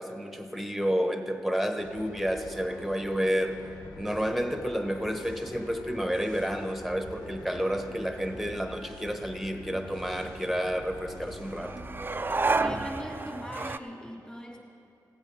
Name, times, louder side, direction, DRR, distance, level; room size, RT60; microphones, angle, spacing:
voice 1, 0.0-3.6 4.0-11.9, equal, ahead, 7 dB, 1.2 m, -30 dB
sound 1, 1.7-12.9, left 1 dB, 85° left, 1.2 m, -47 dB
sound 2, 4.1-13.8, right 3 dB, 30° right, 0.4 m, -35 dB
voice 2, 12.6-14.6, equal, 15° left, -1 dB, 3.3 m, -40 dB
16.0 x 8.9 x 5.7 m, 2.8 s
supercardioid pair, 40°, 7 cm